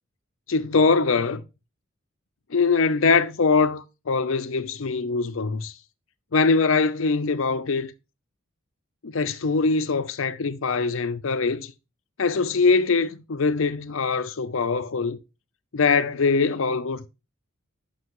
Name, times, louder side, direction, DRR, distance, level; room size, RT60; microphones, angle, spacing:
voice 1, 0.5-1.4 2.5-5.7 6.3-7.9 9.0-11.7 12.2-15.2 15.7-17.1, left 4 dB, 70° left, 0.6 m, -22 dB
7.8 x 6.1 x 3.0 m
head